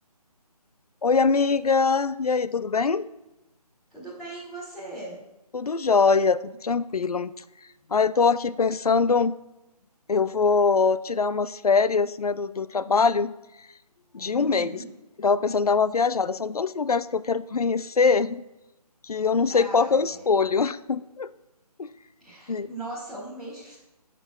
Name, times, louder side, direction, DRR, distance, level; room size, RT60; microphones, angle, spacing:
voice 1, 1.0-3.1 5.5-7.3 7.9-9.4 10.1-13.3 14.1-14.8 15.2-18.4 19.1-21.3 21.8-21.9 22.5-22.7, left 5 dB, 70° left, 14 dB, 0.4 m, -23 dB
voice 2, 3.9-5.2 14.3-14.9 19.5-20.4 22.2-23.8, right 2 dB, ahead, -14 dB, 1.1 m, -38 dB
15.5 x 6.0 x 2.3 m, 0.96 s
figure-of-eight pair, 150°, 20 cm